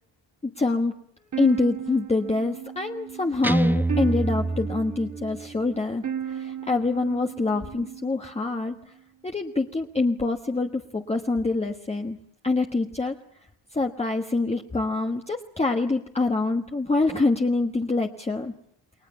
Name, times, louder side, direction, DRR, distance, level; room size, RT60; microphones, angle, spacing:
voice 1, 0.6-0.9 1.4-8.8 9.2-12.2 12.4-13.1 13.7-18.5, left 3 dB, 15° left, 3 dB, 1.3 m, -25 dB
sound 1, 1.3-8.4, right 8 dB, 40° right, 2.1 m, -36 dB
Guitar, 3.4-5.5, right 2 dB, 5° right, 1.0 m, -25 dB
29.5 x 22.5 x 7.0 m, 0.70 s
wide cardioid pair, 155°, 45 cm